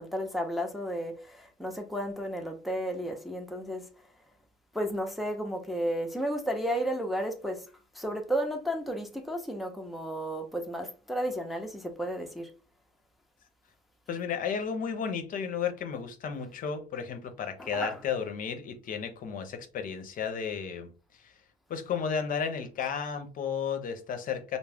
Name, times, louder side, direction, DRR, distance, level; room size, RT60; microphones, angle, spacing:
voice 1, 0.0-3.9 4.7-7.7 7.9-12.5 17.6-18.0, equal, ahead, 0.5 m, -33 dB
voice 2, 14.1-20.9 21.2-21.3 21.7-24.6, left 6 dB, 50° left, 0.6 m, -33 dB
2.3 x 2.0 x 3.4 m
supercardioid pair, 85°, 18 cm